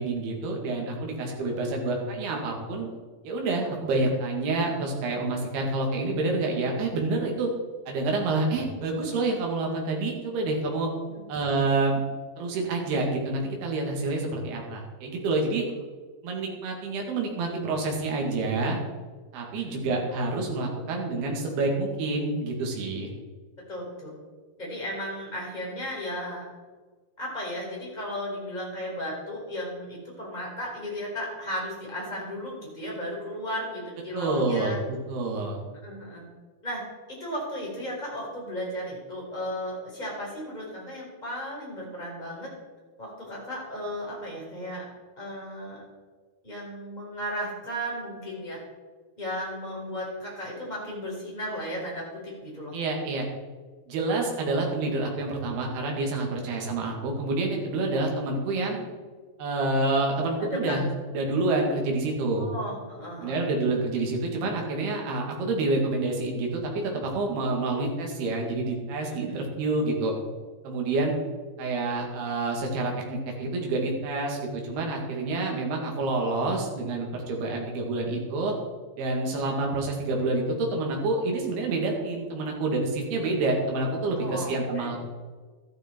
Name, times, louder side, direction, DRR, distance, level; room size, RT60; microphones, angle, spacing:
voice 1, 0.0-2.9 3.2-7.5 7.9-10.9 11.3-12.0 12.4-15.7 16.2-18.8 19.3-23.1 34.1-34.8 35.1-35.6 52.7-53.3 53.9-58.8 59.4-62.5 63.2-70.1 70.6-71.2 71.6-74.4 74.6-78.5 79.0-85.0, right 2 dB, 65° right, 0 dB, 4.1 m, -28 dB
voice 2, 23.7-24.1 24.6-26.4 27.2-34.8 35.8-36.2 36.6-36.8 37.1-42.5 43.0-44.8 45.2-45.8 46.4-48.6 49.2-52.7 56.3-56.4 60.4-60.9 62.4-63.4 69.0-69.5 84.2-84.9, equal, 10° left, -4 dB, 4.4 m, -35 dB
13.0 x 12.5 x 4.6 m, 1.4 s
omnidirectional pair, 5.1 m